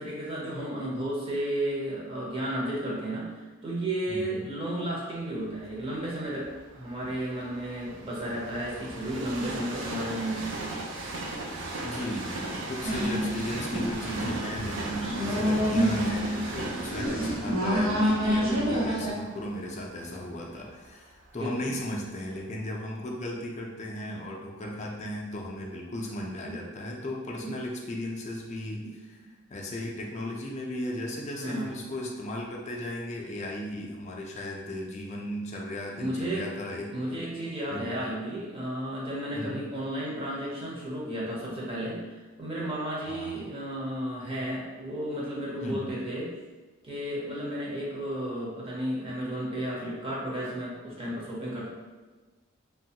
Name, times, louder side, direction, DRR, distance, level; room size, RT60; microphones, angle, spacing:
voice 1, 0.0-3.3 3.6-10.7 21.3-21.7 26.5-26.6 27.4-27.5 28.8-28.9 31.4-31.9 36.0-36.5 36.9-46.3 46.8-51.7, right 1 dB, 25° right, -5 dB, 0.7 m, -33 dB
voice 2, 4.1-4.4 11.8-29.2 29.5-37.2 37.7-38.0 39.3-39.6 43.1-43.5 45.6-46.0, left 1 dB, 35° left, -2 dB, 0.4 m, -36 dB
Train, 5.7-21.6 22.2-22.3, right 2 dB, 60° right, 0.4 m, -38 dB
sound 1, 12.8-19.1, equal, 80° right, 0.8 m, -28 dB
2.9 x 2.2 x 2.8 m, 1.3 s
head